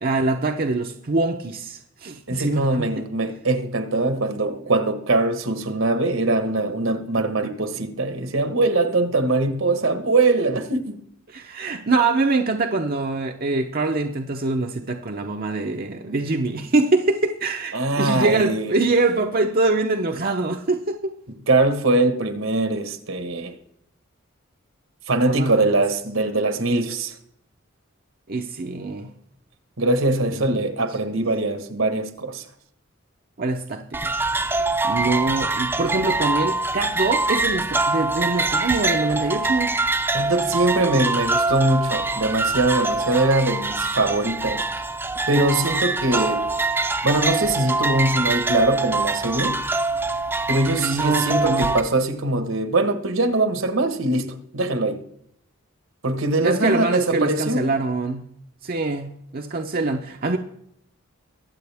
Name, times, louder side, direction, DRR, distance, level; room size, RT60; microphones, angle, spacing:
voice 1, 0.0-2.9 11.3-21.1 25.3-25.8 28.3-29.1 30.4-30.5 33.4-34.1 34.6-39.7 50.8-51.7 56.4-58.2 58.6-60.4, right 3 dB, 45° right, 0.7 m, -24 dB
voice 2, 2.3-11.0 17.7-18.8 21.5-23.5 25.1-27.2 29.8-32.4 40.1-44.7 45.3-46.5 47.0-49.6 50.5-55.0 56.0-57.7, right 2 dB, 70° right, 1.4 m, -22 dB
sound 1, 33.9-51.8, right 3 dB, 10° right, 0.6 m, -24 dB
23.0 x 7.8 x 3.5 m
head